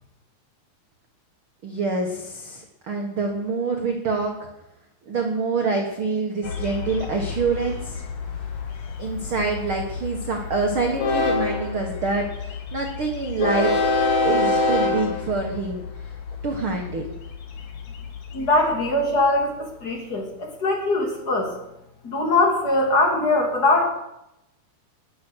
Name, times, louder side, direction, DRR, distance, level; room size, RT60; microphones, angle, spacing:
voice 1, 1.6-4.3 5.1-8.0 9.0-13.8 14.2-15.8 16.4-17.1, right 4 dB, 85° right, 2 dB, 1.1 m, -26 dB
Train, 6.4-19.4, left 3 dB, 50° left, 1.9 m, -27 dB
voice 2, 18.3-19.6 19.8-21.5 22.0-23.9, left 2 dB, 30° left, 1 dB, 2.5 m, -21 dB
20.0 x 7.1 x 6.3 m, 0.88 s
omnidirectional pair, 4.6 m